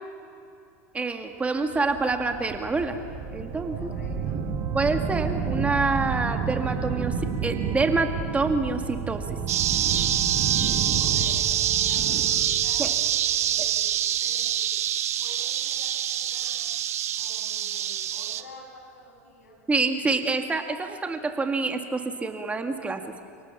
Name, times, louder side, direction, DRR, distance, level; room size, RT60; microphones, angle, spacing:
voice 1, 0.9-3.0 3.3-3.9 4.7-7.1 7.4-9.2 12.8-12.9 13.6-13.7 19.7-23.0, right 3 dB, 15° right, 5 dB, 2.1 m, -26 dB
sound 1, 1.7-13.8, right 5 dB, 45° right, 7.8 m, -31 dB
voice 2, 3.8-4.4 10.9-12.8 13.4-13.9 14.2-14.7 15.2-16.6 17.1-19.6, left 1 dB, 85° left, 0 dB, 7.7 m, -48 dB
sound 2, 9.5-18.4, right 11 dB, 80° right, 1.1 m, -25 dB
30.0 x 18.0 x 7.4 m, 2.5 s
hypercardioid pair, 90°, 8 cm